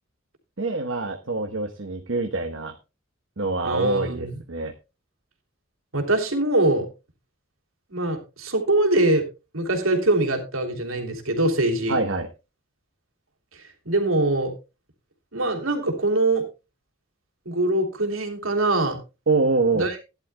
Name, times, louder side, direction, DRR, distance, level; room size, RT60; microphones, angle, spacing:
voice 1, 0.6-2.7 3.4-4.7 11.9-12.3 19.3-19.9, right 3 dB, 70° right, 3 dB, 1.1 m, -25 dB
voice 2, 3.6-4.4 5.9-6.9 7.9-9.2 9.5-12.0 13.5-14.5 15.3-16.4 17.4-19.0 19.7-20.0, right 2 dB, 85° right, 4 dB, 3.1 m, -23 dB
17.0 x 11.0 x 2.2 m, 0.28 s
head